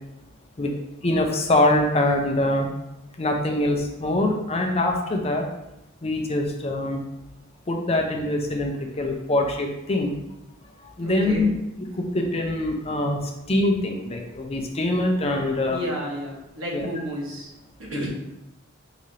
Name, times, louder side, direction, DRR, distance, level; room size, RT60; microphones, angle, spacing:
voice 1, 1.0-2.7 3.2-5.5 6.0-7.0 7.7-10.1 11.0-11.5 11.9-15.8 16.7-16.9 17.9-18.1, left 1 dB, 30° left, 2 dB, 0.5 m, -24 dB
voice 2, 11.0-11.5 15.7-17.5 17.8-18.1, equal, 90° right, -3 dB, 1.2 m, -32 dB
4.8 x 3.3 x 2.8 m, 0.89 s
head